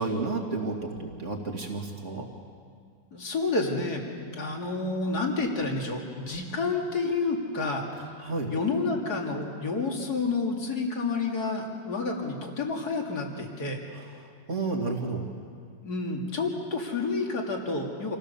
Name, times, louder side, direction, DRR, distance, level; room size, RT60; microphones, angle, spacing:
voice 1, 0.0-2.3 8.2-8.5 13.9-14.0 14.5-15.2, right 3 dB, 40° right, 1 dB, 2.7 m, -31 dB
voice 2, 3.1-13.8 15.8-18.2, left 3 dB, 60° left, 0 dB, 3.1 m, -30 dB
27.0 x 16.5 x 7.0 m, 2.1 s
omnidirectional pair, 2.0 m